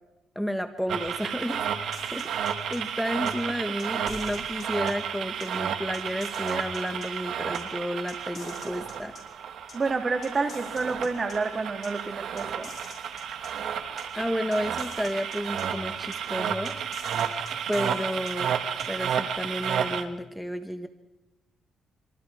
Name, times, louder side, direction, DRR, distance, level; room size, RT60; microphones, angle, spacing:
voice 1, 0.3-9.1 14.2-16.8 17.7-18.5 18.9-20.9, equal, ahead, 7 dB, 1.3 m, -32 dB
sound 1, 0.9-20.0, right 8 dB, 70° right, 1.8 m, -32 dB
sound 2, 1.9-2.8 3.3-3.4 3.8-4.9 5.4-5.5 5.9-7.1 7.5-7.6 8.1-9.2 9.7-9.8 10.2-11.4 11.8-11.9 12.4-13.5 14.0-14.1 14.5-15.6 16.1-16.2 16.6-18.3 18.8-18.9, left 6 dB, 45° left, 7.5 m, -47 dB
voice 2, 9.7-12.7, right 4 dB, 35° right, 6 dB, 2.6 m, -29 dB
26.5 x 25.5 x 4.8 m, 1.0 s
cardioid pair, 90°, 0 cm